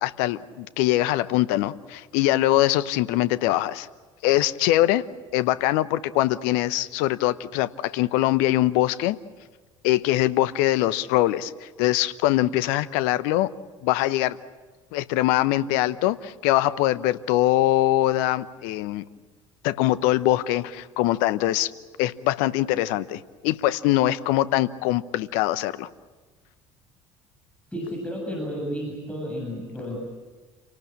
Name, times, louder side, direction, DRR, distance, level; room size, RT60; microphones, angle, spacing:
voice 1, 0.0-3.9 4.2-5.0 5.3-9.2 9.8-13.5 13.8-14.4 14.9-19.0 19.6-21.7 22.0-25.9, left 15 dB, 65° left, 15 dB, 0.9 m, -23 dB
voice 2, 27.7-30.0, equal, 10° left, -1 dB, 7.5 m, -32 dB
29.0 x 18.5 x 8.6 m, 1.4 s
figure-of-eight pair, 60°, 16 cm